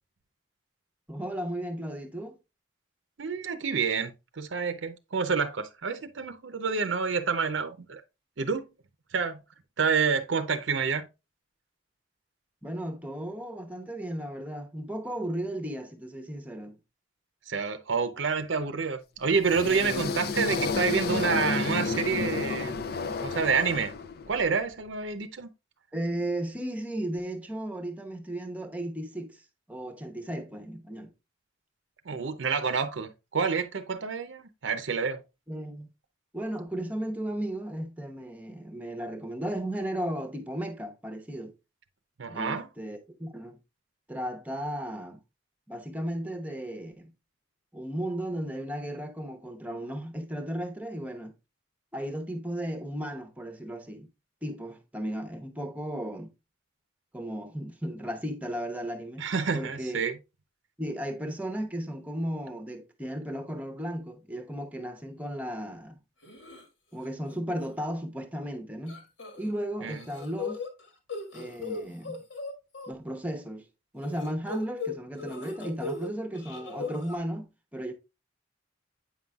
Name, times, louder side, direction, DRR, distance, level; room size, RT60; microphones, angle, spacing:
voice 1, 1.1-2.4 12.6-16.8 25.9-29.4 29.7-31.1 35.5-35.9 36.3-41.5 42.3-43.6 44.1-45.2 45.7-47.1 47.7-51.3 51.9-54.1 54.4-56.3 57.1-59.2 59.5-60.0 60.8-66.0 66.9-69.0 69.4-70.6 71.3-72.2 72.9-73.7 73.9-77.9, right 1 dB, 10° right, 0.8 m, -35 dB
voice 2, 3.2-8.0 8.4-8.6 9.1-9.4 9.8-11.1 17.5-22.8 23.2-23.9 24.3-25.5 32.1-35.2 42.2-42.7 59.2-60.2 69.8-70.0, right 5 dB, 80° right, 0.6 m, -28 dB
sound 1, 19.3-24.5, left 4 dB, 55° left, 0.5 m, -31 dB
sound 2, 66.2-66.6 67.0-67.3 67.6-67.7 68.9-69.5 69.8-72.9 74.0-76.1 76.3-77.2, left 3 dB, 80° left, 1.8 m, -38 dB
8.4 x 5.4 x 2.3 m
head